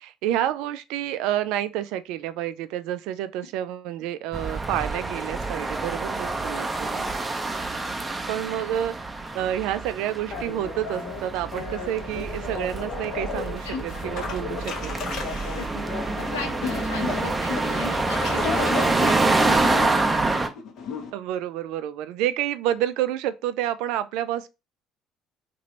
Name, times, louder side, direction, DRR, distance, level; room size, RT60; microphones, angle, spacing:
voice 1, 0.0-7.0 8.3-9.0 9.3-14.9 17.0-17.2 18.8-19.4 21.1-24.5, right 12 dB, 70° right, 0.3 m, -29 dB
sound 1, 4.3-20.5, right 3 dB, 20° right, 0.6 m, -27 dB
sound 2, 10.3-21.1, left 5 dB, 60° left, 0.8 m, -34 dB
voice 2, 15.5-18.7 19.0-19.2, left 6 dB, 90° left, 0.9 m, -37 dB
2.8 x 2.5 x 3.2 m
hypercardioid pair, 60°, 0 cm